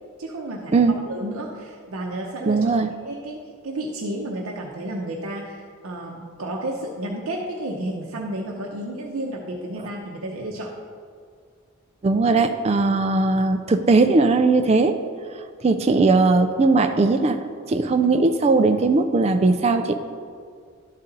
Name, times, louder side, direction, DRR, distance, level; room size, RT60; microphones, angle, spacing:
voice 1, 0.2-0.8 1.1-2.7 3.0-10.7, right 1 dB, 80° right, -1 dB, 0.7 m, -31 dB
voice 2, 2.5-2.9 12.0-15.0 15.6-17.4 17.7-20.0, right 3 dB, 30° right, 7 dB, 0.3 m, -19 dB
11.5 x 4.2 x 3.9 m, 2.1 s
head